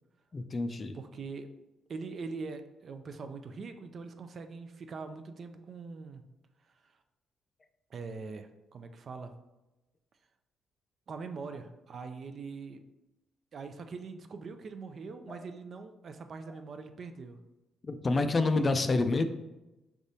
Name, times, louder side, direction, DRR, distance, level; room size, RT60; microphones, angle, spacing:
voice 1, 0.3-0.9 15.3-15.4 17.8-19.2, left 3 dB, 30° left, 8 dB, 0.4 m, -28 dB
voice 2, 0.9-1.5 1.9-6.2 7.9-9.3 11.1-12.8 13.5-17.4, right 4 dB, 50° right, 7 dB, 0.4 m, -42 dB
4.9 x 3.4 x 2.7 m, 1.0 s
cardioid pair, 90°, 0 cm